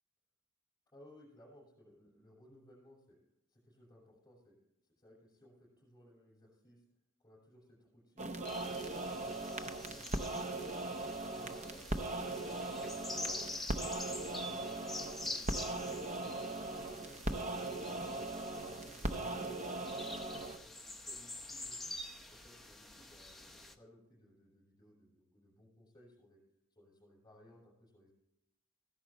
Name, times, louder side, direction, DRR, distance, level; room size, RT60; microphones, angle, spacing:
voice 1, 0.9-3.2 3.5-4.6 5.0-6.8 7.2-8.7 9.1-10.7 11.3-13.5 13.8-19.9 20.2-22.0 22.3-26.4 26.7-28.1, equal, 20° left, -7 dB, 6.1 m, -61 dB
sound 1, 8.2-20.6, right 2 dB, 35° right, 0.7 m, -39 dB
sound 2, 8.5-23.7, left 2 dB, ahead, 0.8 m, -47 dB
15.0 x 11.0 x 4.3 m, 0.80 s
head